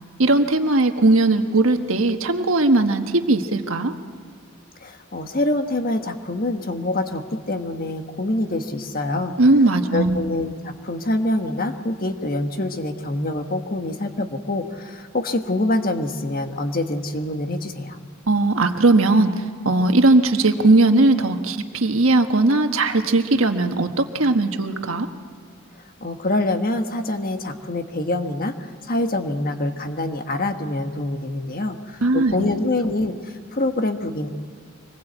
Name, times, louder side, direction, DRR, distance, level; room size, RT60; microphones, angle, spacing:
voice 1, 0.2-3.9 9.4-10.2 18.3-25.1 32.0-32.3, right 2 dB, 75° right, 6 dB, 1.4 m, -18 dB
voice 2, 4.8-9.4 9.9-18.0 26.0-34.3, left 2 dB, 45° left, 6 dB, 1.4 m, -25 dB
25.0 x 20.5 x 8.1 m, 2.1 s
head